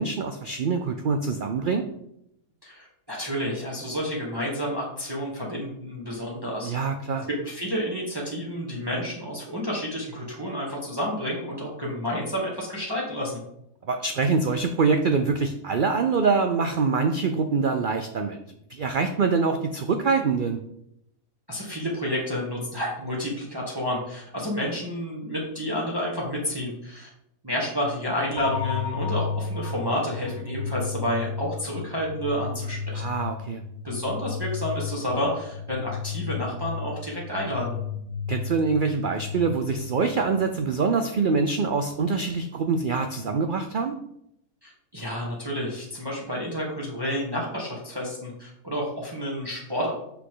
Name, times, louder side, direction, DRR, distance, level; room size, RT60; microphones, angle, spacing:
voice 1, 0.0-1.8 6.6-7.3 13.9-18.4 18.7-20.6 32.9-33.6 38.3-43.9, right 4 dB, 80° right, 6 dB, 0.4 m, -24 dB
voice 2, 2.6-6.7 7.3-13.4 21.5-27.1 27.4-33.0 33.8-37.8 44.6-49.9, equal, 15° right, -3 dB, 1.5 m, -30 dB
sound 1, 28.4-40.3, left 6 dB, 85° left, 1.2 m, -33 dB
6.1 x 5.7 x 3.8 m, 0.78 s
omnidirectional pair, 1.6 m